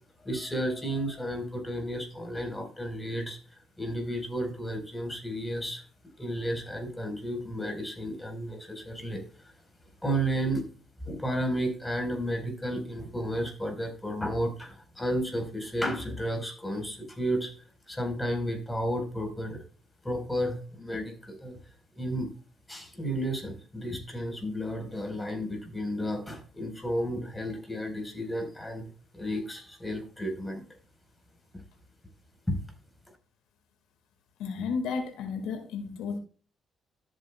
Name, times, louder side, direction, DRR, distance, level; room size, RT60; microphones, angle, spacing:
voice 1, 0.2-3.4 3.8-5.8 6.2-9.5 10.0-10.6 11.0-17.5 17.9-19.6 20.0-21.6 22.0-22.3 22.7-28.9 29.1-30.6 32.5-32.6, equal, 10° left, 4.5 m, -32 dB
voice 2, 34.4-36.2, left 5 dB, 90° left, 1.9 m, -32 dB
13.5 x 8.2 x 2.3 m
cardioid pair, 90°, 0 cm